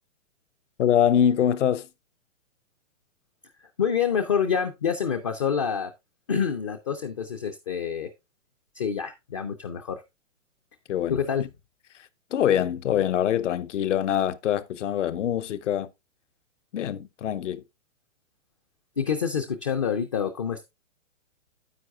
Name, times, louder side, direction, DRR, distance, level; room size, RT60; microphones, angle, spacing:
voice 1, 0.8-1.9 10.9-11.5 12.3-15.9 16.7-17.6, left 10 dB, 65° left, 0.8 m, -24 dB
voice 2, 3.6-5.9 6.3-8.1 8.7-10.0 11.1-11.5 19.0-20.6, left 7 dB, 25° left, 0.4 m, -27 dB
9.5 x 8.4 x 2.4 m
hypercardioid pair, 155°, 39 cm